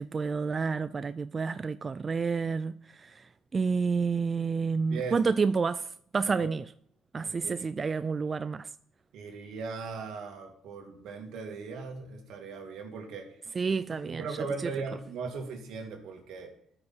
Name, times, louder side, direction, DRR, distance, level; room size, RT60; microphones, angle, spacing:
voice 1, 0.0-6.6 7.1-8.7 13.5-14.4, right 5 dB, 30° right, 0.3 m, -29 dB
voice 2, 7.2-7.6 9.1-13.4 14.0-16.5, right 4 dB, 80° right, 2.5 m, -38 dB
13.5 x 6.2 x 4.4 m
cardioid pair, 115°, 0 cm